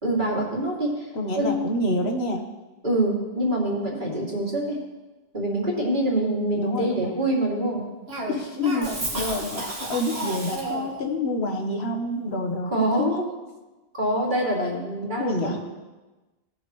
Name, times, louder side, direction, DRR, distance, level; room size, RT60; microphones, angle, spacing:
voice 1, 0.0-1.1 1.4-1.6 2.8-4.8 5.3-7.8 12.7-13.1 14.0-15.6, right 1 dB, 50° right, -4 dB, 2.8 m, -25 dB
voice 2, 1.1-2.4 6.6-7.1 8.3-13.3 15.2-15.6, left 1 dB, 85° left, 3 dB, 1.5 m, -27 dB
Cough, 8.1-11.0, right 1 dB, 80° right, 2.1 m, -31 dB
19.0 x 7.0 x 3.1 m, 1.2 s
omnidirectional pair, 1.0 m